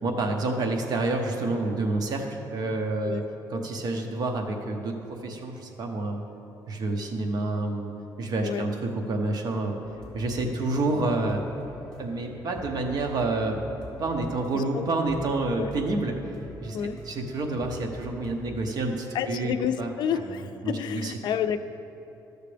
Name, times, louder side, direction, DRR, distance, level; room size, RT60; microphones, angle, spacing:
voice 1, 0.0-3.2 3.5-6.2 6.7-7.9 8.2-9.8 10.1-11.4 12.0-13.6 14.0-16.1 16.6-16.8 17.1-19.5 19.8-19.9 20.1-20.4 20.6-21.1, right 2 dB, 55° right, 3 dB, 0.9 m, -28 dB
sound 1, 9.8-18.4, equal, 10° left, 1.4 m, -45 dB
voice 2, 14.5-14.8 15.6-15.7 16.7-17.0 19.1-21.6, left 8 dB, 65° left, 10 dB, 0.4 m, -29 dB
13.0 x 6.6 x 3.4 m, 2.8 s
cardioid pair, 155°, 8 cm